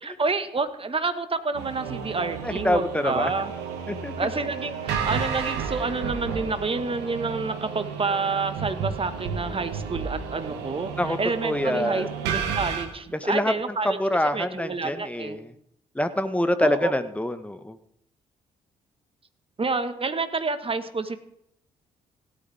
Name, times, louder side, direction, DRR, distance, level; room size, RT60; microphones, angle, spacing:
voice 1, 0.0-3.5 4.2-14.0 14.3-15.4 16.6-16.9 19.6-21.2, right 4 dB, 30° right, 10 dB, 1.6 m, -29 dB
sound 1, 1.5-12.9, right 6 dB, 70° right, 1.9 m, -32 dB
voice 2, 2.4-3.3 3.9-4.1 11.0-11.2 11.4-12.1 13.1-13.5 13.8-15.5 15.9-17.8, left 1 dB, 5° left, 10 dB, 1.4 m, -25 dB
17.0 x 12.5 x 3.6 m, 0.75 s
hypercardioid pair, 40°, 18 cm